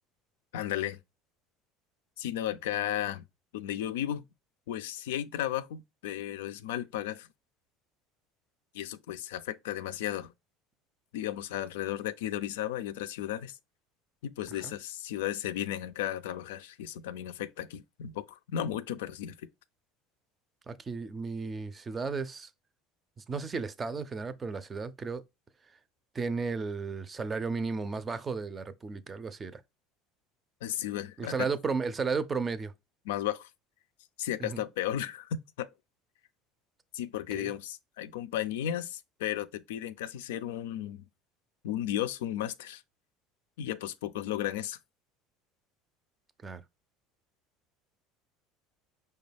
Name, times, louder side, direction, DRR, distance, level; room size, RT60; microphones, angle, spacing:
voice 1, 0.5-1.0 2.2-3.2 3.5-4.2 4.7-7.3 8.7-10.3 11.1-13.6 14.2-19.4 30.6-31.5 33.1-33.5 34.2-35.7 36.9-41.1 41.6-42.8 43.6-44.8, left 11 dB, 85° left, 0.3 m, -34 dB
voice 2, 20.7-22.5 23.2-25.2 26.1-29.6 31.2-32.7 34.4-34.6 37.3-37.5 46.4-46.6, right 4 dB, 25° right, 0.4 m, -34 dB
5.0 x 2.3 x 3.3 m
supercardioid pair, 95°, 0 cm